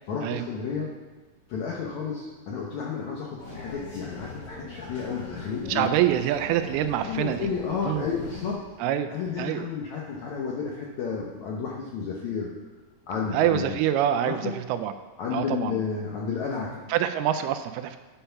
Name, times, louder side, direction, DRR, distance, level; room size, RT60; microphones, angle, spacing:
voice 1, 0.1-0.9 1.5-5.9 7.0-8.6 9.1-12.5 13.1-13.8 14.2-14.5 15.2-16.8, left 6 dB, 75° left, -2 dB, 1.7 m, -31 dB
sound 1, 3.4-8.5, left 3 dB, 35° left, 2.3 m, -41 dB
voice 2, 5.7-7.5 7.8-8.1 8.8-9.1 9.4-9.7 13.3-14.9 15.3-15.8 16.9-18.0, right 11 dB, 85° right, 9 dB, 2.4 m, -25 dB
10.5 x 5.7 x 5.7 m, 1.3 s
omnidirectional pair, 4.6 m